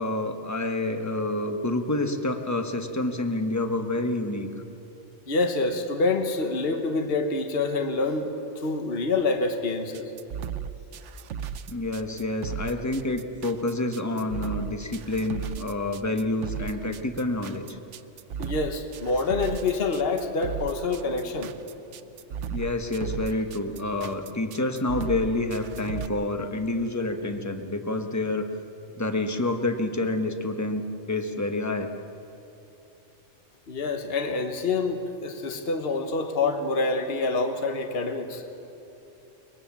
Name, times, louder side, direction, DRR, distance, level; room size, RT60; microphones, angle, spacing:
voice 1, 0.0-4.5 11.7-17.8 22.5-28.5 29.0-30.8 31.1-31.9, left 2 dB, 15° left, 6 dB, 1.1 m, -28 dB
voice 2, 5.3-10.1 18.4-21.5 33.7-38.4, left 3 dB, 55° left, 6 dB, 1.5 m, -27 dB
sound 1, 9.9-26.1, right 8 dB, 80° right, 1.0 m, -35 dB
23.5 x 21.0 x 7.3 m, 2.9 s
omnidirectional pair, 1.2 m